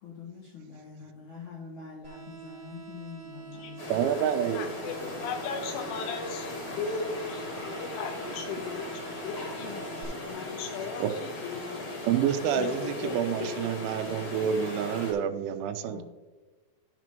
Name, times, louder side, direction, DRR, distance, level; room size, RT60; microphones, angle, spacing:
voice 1, 0.0-4.0 15.9-16.0, left 5 dB, 70° left, -6 dB, 1.8 m, -44 dB
sound 1, 2.0-10.0, right 7 dB, 60° right, 0.8 m, -46 dB
sound 2, 3.8-15.1, left 2 dB, 45° left, 2.7 m, -38 dB
voice 2, 3.9-4.7 10.0-10.1 11.0-11.2 12.0-16.0, right 9 dB, 85° right, 8 dB, 3.1 m, -28 dB
voice 3, 4.5-11.8 12.5-13.6, left 5 dB, 90° left, 5 dB, 3.5 m, -37 dB
13.0 x 6.2 x 3.0 m, 1.2 s
omnidirectional pair, 5.5 m